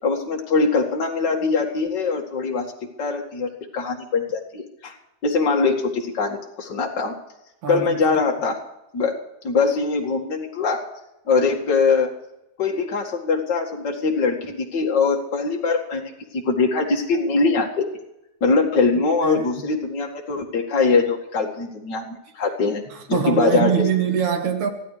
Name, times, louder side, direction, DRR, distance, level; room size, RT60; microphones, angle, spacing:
voice 1, 0.0-2.7 3.0-4.9 5.2-7.1 7.7-8.6 8.9-9.2 9.4-10.8 11.3-12.1 12.6-16.1 16.4-17.9 18.4-22.8 23.1-23.8, left 4 dB, 40° left, -1 dB, 2.5 m, -22 dB
voice 2, 7.6-8.2 19.2-19.6 22.9-24.7, right 8 dB, 75° right, 5 dB, 3.1 m, -24 dB
23.0 x 15.0 x 3.4 m, 0.89 s
omnidirectional pair, 3.4 m